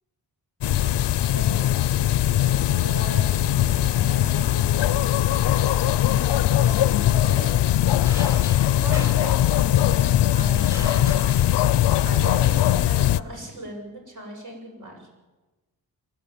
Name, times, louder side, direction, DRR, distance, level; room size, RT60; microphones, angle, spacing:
sound 1, 0.6-13.2, left 12 dB, 75° left, 0.6 m, -20 dB
voice 1, 1.3-1.8 2.3-5.9 6.6-7.6 8.8-11.3 12.0-15.1, right 1 dB, 45° right, 1 dB, 7.7 m, -39 dB
sound 2, 8.1-10.0 10.6-12.1, right 1 dB, 5° right, 3.9 m, -40 dB
23.0 x 16.5 x 8.8 m, 1.1 s
wide cardioid pair, 145°, 41 cm